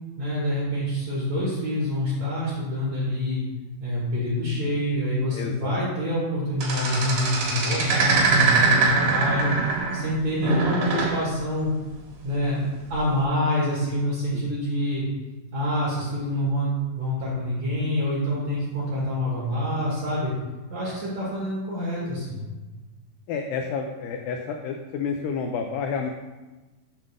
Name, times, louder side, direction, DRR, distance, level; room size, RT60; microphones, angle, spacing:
voice 1, 0.2-3.4 3.8-9.5 9.9-11.7 12.2-15.1 15.5-20.3 20.7-22.4, left 1 dB, 50° right, -7 dB, 2.5 m, -26 dB
voice 2, 5.3-5.8 14.3-14.5 23.3-26.1, left 5 dB, 85° left, 3 dB, 2.0 m, -30 dB
sound 1, 6.6-10.1 10.4-11.2 12.9-13.2, right 4 dB, 90° right, 3.5 m, -23 dB
7.3 x 3.7 x 6.4 m, 1.2 s
omnidirectional pair, 4.5 m